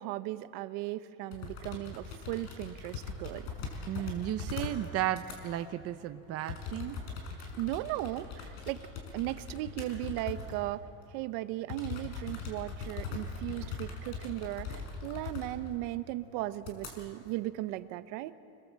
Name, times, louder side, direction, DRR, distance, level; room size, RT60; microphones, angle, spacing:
voice 1, 0.0-3.5 7.6-8.9 9.1-10.8 11.1-18.3, right 16 dB, 75° right, 12 dB, 1.0 m, -37 dB
sound 1, 1.3-4.9 5.1-5.4 6.5-10.7 11.0-11.1 11.7-15.7 16.1-16.2 16.6-16.9, left 5 dB, 70° left, 5.2 m, -41 dB
voice 2, 3.9-7.0, right 12 dB, 35° right, 9 dB, 0.7 m, -34 dB
27.0 x 21.5 x 7.6 m, 2.7 s
cardioid pair, 160°, 42 cm